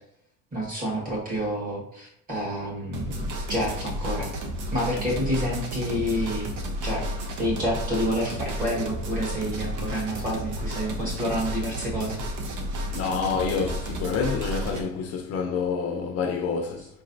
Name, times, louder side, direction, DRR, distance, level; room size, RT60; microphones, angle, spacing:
voice 1, 0.5-4.3 4.7-6.5 6.8-7.1 7.4-12.2 16.8-16.9, equal, 25° right, 1.4 m, -29 dB
sound 1, 2.9-14.8, equal, 70° right, 0.8 m, -32 dB
voice 2, 12.9-16.8, left 5 dB, 50° left, 0.5 m, -28 dB
4.6 x 3.1 x 2.6 m
cardioid pair, 170°, 32 cm